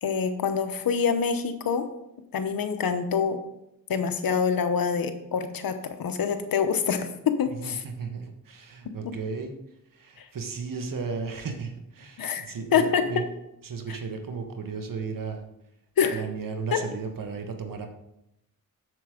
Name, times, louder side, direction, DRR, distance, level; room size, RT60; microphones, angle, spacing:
voice 1, 0.0-1.9 2.3-3.4 3.9-7.8 10.2-10.3 12.2-12.4 12.7-13.0 16.0-16.2 16.7-16.8, left 6 dB, 70° left, 9 dB, 1.0 m, -26 dB
voice 2, 7.5-9.5 9.9-13.3 13.6-15.4 16.1-17.9, right 5 dB, 65° right, 5 dB, 1.5 m, -35 dB
8.0 x 6.9 x 5.1 m, 0.85 s
cardioid pair, 80°, 36 cm